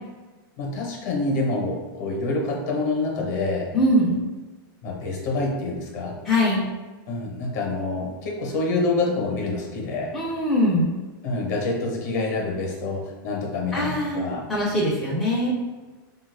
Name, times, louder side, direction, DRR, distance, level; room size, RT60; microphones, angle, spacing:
voice 1, 0.6-3.7 4.8-6.2 7.1-10.1 11.2-14.5, left 3 dB, 50° left, 0 dB, 0.7 m, -27 dB
voice 2, 3.7-4.2 6.2-6.6 10.1-10.9 13.7-15.5, left 1 dB, ahead, -7 dB, 0.4 m, -22 dB
3.1 x 2.3 x 3.2 m, 1.2 s
supercardioid pair, 170°, 12 cm